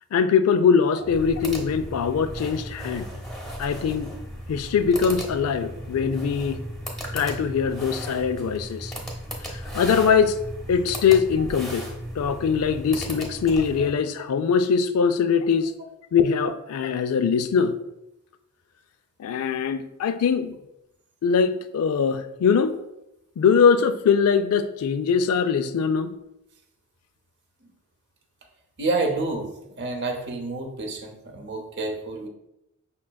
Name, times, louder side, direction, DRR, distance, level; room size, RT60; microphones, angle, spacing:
voice 1, 0.1-3.1 3.6-4.1 4.5-6.6 7.1-8.9 9.5-10.4 10.7-11.9 12.2-15.7 16.1-17.8 19.2-20.6 21.2-22.8 23.4-26.1, left 6 dB, 90° left, 11 dB, 0.4 m, -22 dB
sound 1, 1.0-14.0, equal, ahead, 0.8 m, -36 dB
voice 2, 28.8-29.5 29.8-32.3, right 3 dB, 55° right, 4 dB, 0.7 m, -29 dB
5.7 x 3.7 x 2.2 m, 0.87 s
head